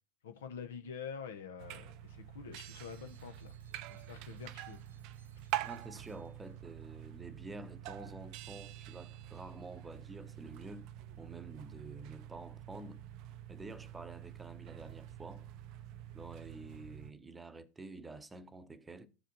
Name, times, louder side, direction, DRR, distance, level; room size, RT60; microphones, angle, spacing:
voice 1, 0.2-3.5 3.9-4.8 5.6-5.7, left 6 dB, 75° left, 0.7 m, -46 dB
sound 1, 1.6-17.1, right 13 dB, 55° right, 0.4 m, -46 dB
sound 2, 2.5-6.8, right 5 dB, 85° right, 0.9 m, -69 dB
voice 2, 5.6-10.9 11.2-13.0 13.5-15.5 16.1-19.1, right 2 dB, 15° right, 0.7 m, -49 dB
15.0 x 5.0 x 2.6 m
hypercardioid pair, 80°, 0 cm